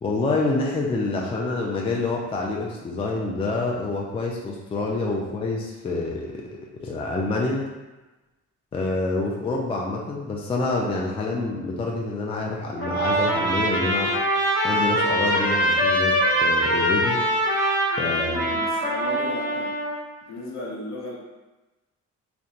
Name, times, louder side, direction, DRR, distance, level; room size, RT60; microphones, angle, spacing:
voice 1, 0.0-6.5 6.8-7.7 8.7-14.1 14.6-17.2 18.0-18.4, left 3 dB, 20° left, -1 dB, 0.3 m, -27 dB
Trumpet, 12.8-20.0, equal, 40° left, 1.1 m, -23 dB
voice 2, 18.2-21.2, left 2 dB, 60° left, -4 dB, 0.8 m, -36 dB
2.8 x 2.1 x 2.4 m, 1.1 s
cardioid pair, 90°, 30 cm